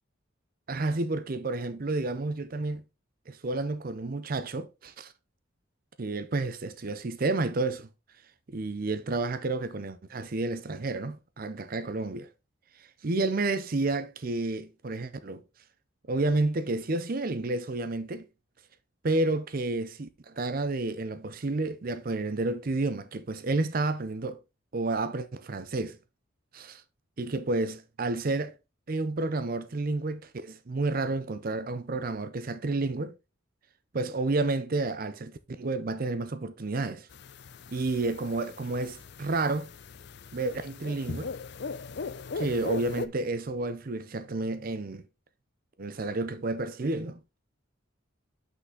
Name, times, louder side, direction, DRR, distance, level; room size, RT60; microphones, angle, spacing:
voice 1, 0.7-2.8 3.3-5.1 6.0-7.9 8.5-12.3 12.8-15.4 16.1-18.3 19.0-24.4 24.7-26.0 26.5-26.8 27.2-28.6 28.9-33.1 33.9-37.1 37.7-39.7 40.3-41.3 42.4-45.0 45.8-47.2, right 2 dB, 45° right, 0.6 m, -30 dB
sound 1, 37.1-43.1, left 4 dB, 55° left, 0.5 m, -39 dB
5.9 x 5.8 x 3.8 m
head